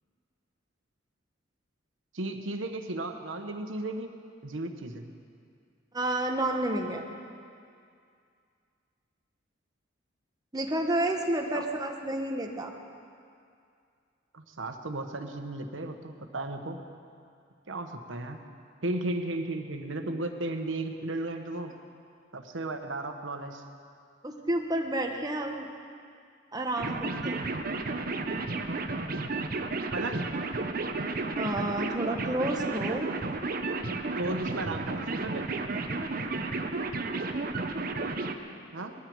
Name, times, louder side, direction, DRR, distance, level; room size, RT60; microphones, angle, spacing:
voice 1, 2.1-4.1 4.4-5.1 11.5-11.7 14.3-16.8 17.7-18.4 18.8-21.7 22.3-23.6 29.9-30.3 34.2-35.5 38.7-38.9, right 2 dB, 85° right, 6 dB, 1.2 m, -34 dB
voice 2, 5.9-7.0 10.5-12.7 24.2-25.7 26.5-27.4 31.3-33.1, right 1 dB, 20° right, 2 dB, 1.2 m, -30 dB
sound 1, 26.8-38.4, right 3 dB, 50° right, 0.9 m, -32 dB
20.0 x 13.5 x 4.7 m, 2.4 s
head